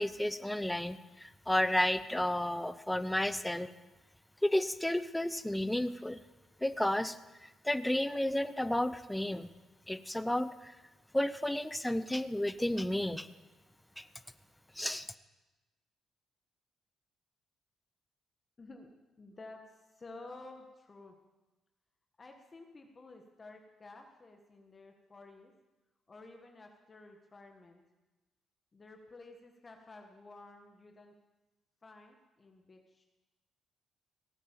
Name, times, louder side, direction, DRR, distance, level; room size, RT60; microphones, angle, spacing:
voice 1, 0.0-3.7 4.4-6.2 6.6-9.5 9.9-10.8 11.1-13.3 14.0-14.1 14.8-15.1, left 1 dB, 5° left, 13 dB, 0.7 m, -32 dB
voice 2, 18.6-18.9 19.2-21.2 22.2-25.5 26.1-27.8 28.7-31.1 31.8-33.1, left 2 dB, 30° left, 3 dB, 1.6 m, -52 dB
17.0 x 9.1 x 7.3 m, 1.1 s
cardioid pair, 90°, 0 cm